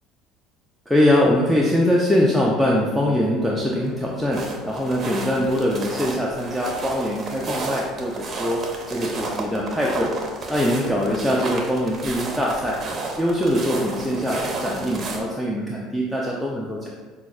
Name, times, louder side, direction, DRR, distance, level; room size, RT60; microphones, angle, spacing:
voice 1, 0.9-10.1 10.5-12.8 13.2-16.9, equal, ahead, -4 dB, 0.5 m, -22 dB
sound 1, 3.5-15.2, right 3 dB, 40° right, 0.6 m, -32 dB
5.8 x 2.2 x 2.3 m, 1.3 s
hypercardioid pair, 75°, 0 cm